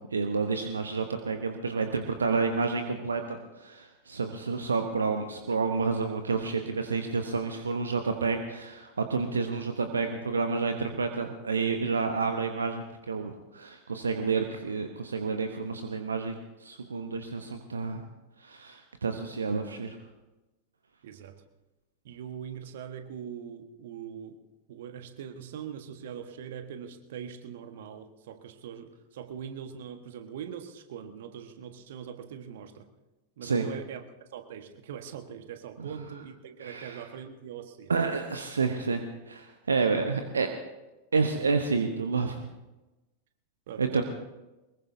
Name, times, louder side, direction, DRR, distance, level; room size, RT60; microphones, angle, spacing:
voice 1, 0.1-18.0 18.4-20.0 33.4-33.6 35.8-35.9 36.6-37.0 37.9-40.5 41.1-42.5 43.8-44.0, right 4 dB, 75° right, 6 dB, 1.0 m, -29 dB
voice 2, 21.0-21.4 22.0-24.4 24.7-32.9 33.4-34.0 34.3-37.9 43.7-44.0, right 8 dB, 55° right, 7 dB, 1.4 m, -42 dB
23.0 x 21.0 x 2.8 m, 1.0 s
figure-of-eight pair, 90°, 0 cm